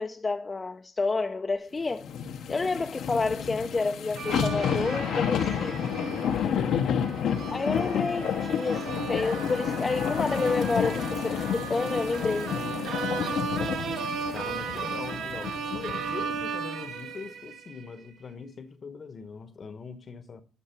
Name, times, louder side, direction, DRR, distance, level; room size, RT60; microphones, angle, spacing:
voice 1, 0.0-2.1 2.5-5.8 7.5-12.5, left 3 dB, 25° left, 0.5 m, -29 dB
sound 1, 2.0-16.5 16.9-17.0, left 8 dB, 75° left, 0.8 m, -30 dB
sound 2, 4.2-17.8, right 6 dB, 75° right, 0.8 m, -36 dB
voice 2, 5.9-7.1 12.3-13.0 14.3-20.4, left 5 dB, 45° left, 1.0 m, -42 dB
12.5 x 4.7 x 4.4 m
cardioid pair, 90°, 0 cm